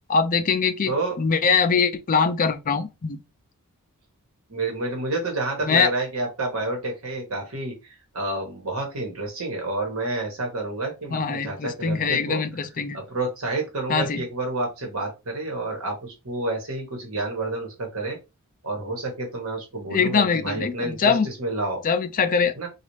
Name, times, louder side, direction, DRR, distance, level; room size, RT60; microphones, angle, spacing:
voice 1, 0.1-3.2 5.6-5.9 11.1-13.0 13.9-14.2 19.9-21.3 21.8-22.5, left 5 dB, 40° left, 0.4 m, -22 dB
voice 2, 0.9-1.2 4.5-12.4 12.9-18.2 18.6-21.8 22.5-22.7, right 2 dB, 70° right, 1.3 m, -29 dB
4.0 x 2.4 x 3.2 m
head